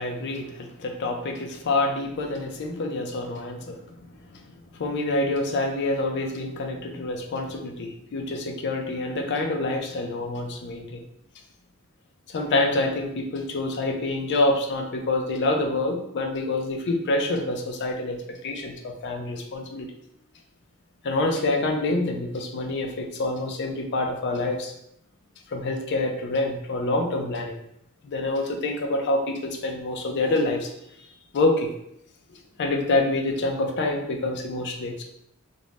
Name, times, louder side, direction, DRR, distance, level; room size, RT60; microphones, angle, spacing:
voice 1, 0.0-3.8 4.8-11.0 12.3-19.9 21.0-24.7 25.5-27.5 28.0-30.7 31.3-31.7 32.6-35.0, left 2 dB, 55° left, 3 dB, 0.4 m, -26 dB
2.5 x 2.0 x 3.2 m, 0.76 s
head